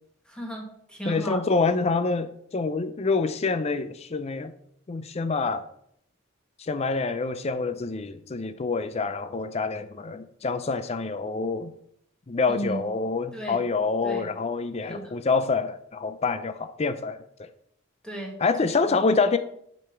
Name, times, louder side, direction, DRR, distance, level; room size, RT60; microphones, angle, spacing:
voice 1, 0.3-1.4 12.5-12.9 13.3-13.6 14.0-14.3 14.9-15.2 18.0-18.3, right 1 dB, 5° left, 0 dB, 1.5 m, -34 dB
voice 2, 1.1-4.5 4.9-5.6 6.6-11.7 12.3-17.5 18.4-19.4, left 4 dB, 30° left, 11 dB, 0.4 m, -26 dB
7.8 x 5.2 x 5.7 m, 0.71 s
head